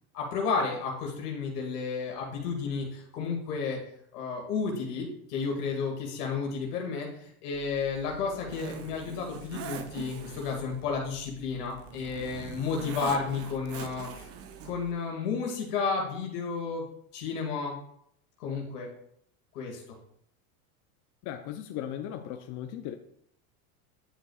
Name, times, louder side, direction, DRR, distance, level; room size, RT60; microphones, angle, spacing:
voice 1, 0.1-3.8 4.1-14.3 14.6-16.8 17.1-17.8 18.4-18.9 19.5-19.8, left 5 dB, 85° left, 0 dB, 2.0 m, -32 dB
Zipper (clothing), 7.5-14.9, right 8 dB, 30° right, 0.7 m, -43 dB
voice 2, 21.2-23.0, left 10 dB, 40° left, 6 dB, 0.5 m, -37 dB
9.8 x 5.4 x 2.3 m, 0.70 s
supercardioid pair, 120°, 45 cm